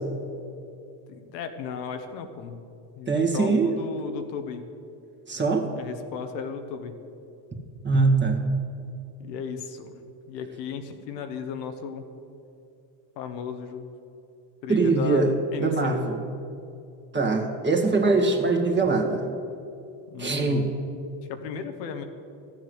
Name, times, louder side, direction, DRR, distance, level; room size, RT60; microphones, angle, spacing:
voice 1, 1.1-2.6 3.0-4.6 5.8-6.9 9.2-9.9 10.3-12.1 13.2-13.9 14.6-16.1 20.1-20.6 21.3-22.0, left 6 dB, 85° left, 6 dB, 1.2 m, -35 dB
voice 2, 3.1-3.8 5.3-5.7 7.8-8.5 14.7-15.3 15.6-16.2 17.1-19.3 20.2-20.7, right 3 dB, 20° right, 1 dB, 2.0 m, -22 dB
13.0 x 7.5 x 8.0 m, 2.6 s
supercardioid pair, 80°, 49 cm